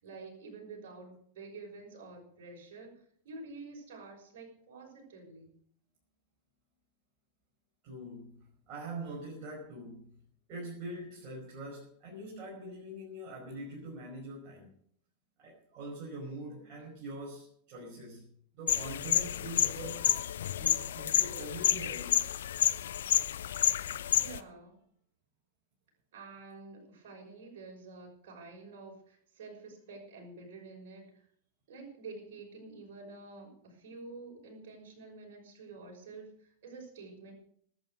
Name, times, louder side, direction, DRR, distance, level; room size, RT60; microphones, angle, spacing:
voice 1, 0.0-2.9 3.2-5.5 24.2-24.8 26.1-31.2 31.7-37.3, right 3 dB, 55° right, 0 dB, 6.0 m, -48 dB
voice 2, 7.8-10.2 10.5-14.7 15.4-20.1 20.6-22.3, right 1 dB, 35° right, -3 dB, 5.1 m, -43 dB
sound 1, 18.7-24.4, left 10 dB, 60° left, 0.7 m, -29 dB
18.5 x 8.7 x 6.4 m, 0.63 s
figure-of-eight pair, 90°, 0 cm